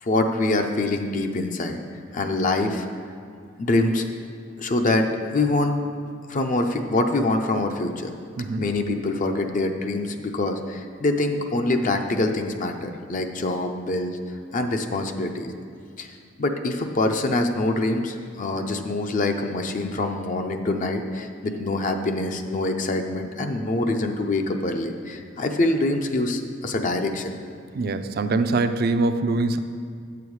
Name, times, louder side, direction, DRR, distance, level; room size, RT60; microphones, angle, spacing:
voice 1, 0.0-1.8 2.1-2.9 3.6-4.0 4.6-5.1 5.3-5.8 6.3-8.1 8.6-14.2 14.5-15.5 16.0-16.1 16.4-27.3, left 2 dB, 45° left, 5 dB, 0.5 m, -25 dB
voice 2, 27.7-29.6, right 3 dB, 55° right, 10 dB, 0.4 m, -23 dB
8.5 x 6.9 x 4.7 m, 2.2 s
head